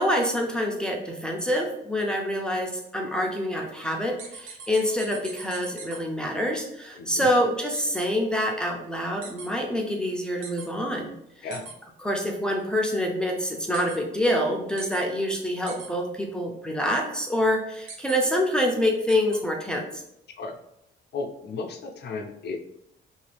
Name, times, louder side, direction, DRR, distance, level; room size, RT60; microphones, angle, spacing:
voice 1, 0.0-11.1 12.0-20.0, equal, 5° left, 0 dB, 0.5 m, -26 dB
sound 1, 4.2-6.0 7.7-8.0 9.2-9.5 10.4-10.7 11.5-11.7 13.7-14.0 14.8-15.0 15.7-15.9 17.9-18.2 19.1-19.4, right 4 dB, 80° right, 0.7 m, -40 dB
voice 2, 7.0-7.3 11.4-11.7 20.4-20.6 21.1-22.6, left 4 dB, 55° left, 4 dB, 0.6 m, -34 dB
2.7 x 2.6 x 3.3 m, 0.80 s
cardioid pair, 90°, 20 cm